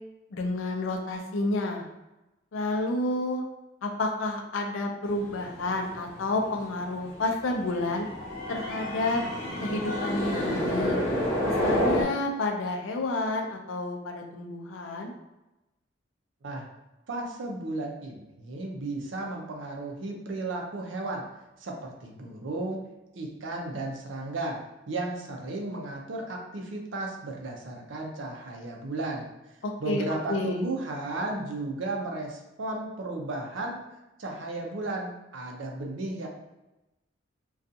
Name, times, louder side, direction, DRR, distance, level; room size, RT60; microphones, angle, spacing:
voice 1, 0.3-1.9 2.5-3.4 3.8-8.1 8.5-9.2 9.6-11.0 11.6-15.1 29.6-30.0 30.3-30.6, left 2 dB, 80° left, 2 dB, 0.4 m, -30 dB
sound 1, 5.1-12.0, equal, 45° left, 0.9 m, -30 dB
voice 2, 17.1-21.2 21.6-22.8 23.1-24.6 24.9-29.3 29.8-33.8 34.2-36.3, right 2 dB, 70° right, 1 dB, 0.5 m, -34 dB
2.5 x 2.3 x 2.6 m, 0.99 s
head